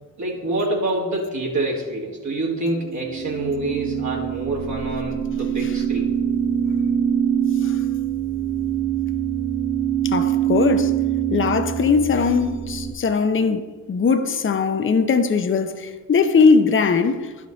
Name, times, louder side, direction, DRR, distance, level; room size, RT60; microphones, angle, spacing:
voice 1, 0.2-6.1, right 2 dB, 60° right, 2.2 m, -26 dB
sound 1, 2.8-12.9, right 9 dB, 15° right, 0.5 m, -24 dB
voice 2, 10.0-10.9 11.3-17.3, left 5 dB, 35° left, 0.7 m, -20 dB
11.0 x 5.0 x 4.0 m
cardioid pair, 65°, 34 cm